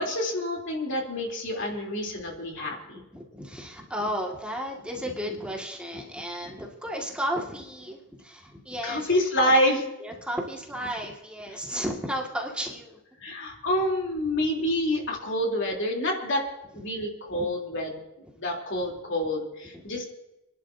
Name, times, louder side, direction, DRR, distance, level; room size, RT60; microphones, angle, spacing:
voice 1, 0.0-3.0 8.8-9.9 13.2-16.4 16.7-18.0 18.3-20.0, equal, 60° left, 0 dB, 3.3 m, -27 dB
voice 2, 3.0-9.1 9.4-9.5 10.0-13.0 19.7-19.8, equal, 5° right, -1 dB, 1.9 m, -33 dB
30.0 x 11.0 x 2.7 m, 0.96 s
head